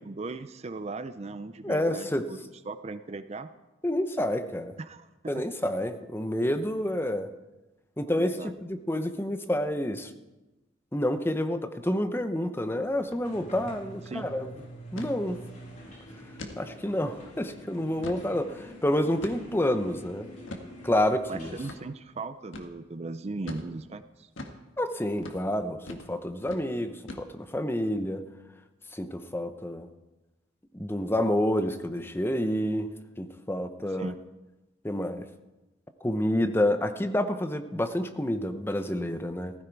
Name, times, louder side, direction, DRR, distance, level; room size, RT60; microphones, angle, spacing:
voice 1, 0.0-2.4 2.7-3.5 4.8-5.1 5.3-5.4 8.2-8.5 14.1-14.3 21.3-24.3 33.9-34.1, right 3 dB, 35° right, 11 dB, 0.5 m, -38 dB
voice 2, 1.6-2.2 3.8-4.7 5.3-7.3 8.0-10.1 10.9-14.5 14.9-15.4 16.6-20.3 20.8-21.5 24.8-28.3 28.9-29.9 30.7-32.9 33.2-34.1 34.8-35.3 36.0-39.5, left 1 dB, 10° left, 9 dB, 0.8 m, -28 dB
sound 1, 13.0-13.2 13.5-13.6 14.0-14.3 15.0-15.2 15.6-15.8 16.4-16.6 17.1-17.2 17.7-18.3 19.2-19.6 20.5-20.7 21.7-21.8 22.5-22.7 23.5-23.7 24.4-24.6 25.2-25.4 25.9-26.1 26.4-26.7 27.1-27.5, left 1 dB, 90° left, 1.7 m, -41 dB
sound 2, 13.2-21.8, equal, 40° left, 3.4 m, -46 dB
15.5 x 15.0 x 4.7 m, 1.1 s
head